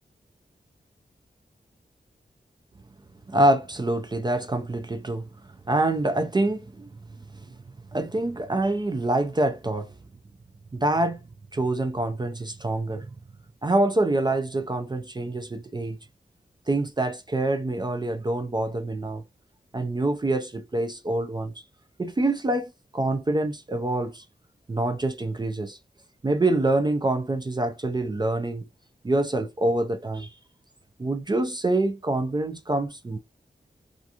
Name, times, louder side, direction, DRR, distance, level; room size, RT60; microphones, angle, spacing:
voice 1, 3.3-5.3 5.7-6.9 7.3-7.5 7.9-9.9 10.7-11.2 11.5-13.1 13.6-16.0 16.7-19.2 19.7-21.6 22.0-24.2 24.7-25.8 26.2-28.7 29.0-30.3 31.0-33.2, right 2 dB, 25° right, 0.4 m, -26 dB
2.5 x 2.3 x 2.8 m
wide cardioid pair, 80°, 17 cm